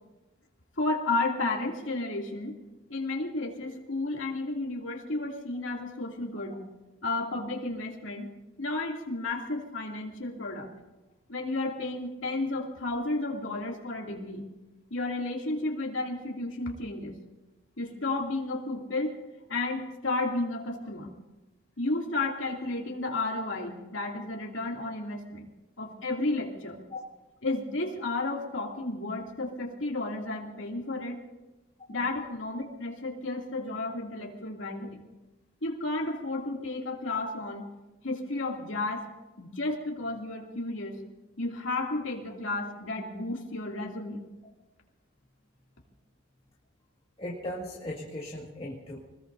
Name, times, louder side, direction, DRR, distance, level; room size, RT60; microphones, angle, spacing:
voice 1, 0.8-2.5 2.9-6.6 7.0-8.3 8.6-10.7 11.3-14.4 14.9-17.1 17.8-19.2 19.5-21.1 21.8-25.5 25.8-26.8 27.4-31.2 31.9-35.0 35.6-37.7 38.0-39.1 39.4-41.0 41.4-44.2, left 2 dB, 70° left, -1 dB, 2.7 m, -32 dB
voice 2, 47.2-49.0, left 1 dB, 25° left, -4 dB, 1.9 m, -37 dB
25.5 x 20.5 x 2.7 m, 1.1 s
head